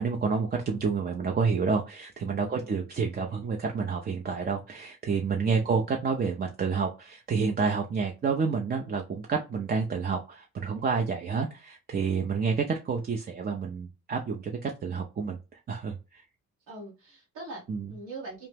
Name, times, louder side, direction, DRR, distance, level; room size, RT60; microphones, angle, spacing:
voice 1, 0.0-16.2 17.7-17.8, right 5 dB, 30° right, 3 dB, 0.5 m, -29 dB
voice 2, 2.3-2.9 5.3-5.9 16.7-18.5, right 2 dB, 85° right, -4 dB, 1.2 m, -43 dB
2.9 x 2.1 x 3.3 m, 0.28 s
cardioid pair, 90°, 30 cm